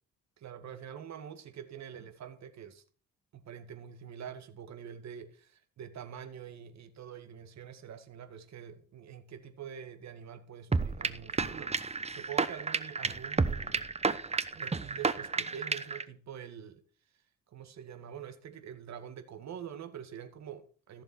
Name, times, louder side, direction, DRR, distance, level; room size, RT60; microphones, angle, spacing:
voice 1, 0.4-2.8 3.3-11.7 12.1-13.9 14.5-16.8 17.1-17.2 17.5-21.0, right 8 dB, 65° right, 2.0 m, -45 dB
sound 1, 10.7-16.0, right 4 dB, 20° right, 0.9 m, -31 dB
14.5 x 7.2 x 4.5 m
cardioid pair, 90°, 30 cm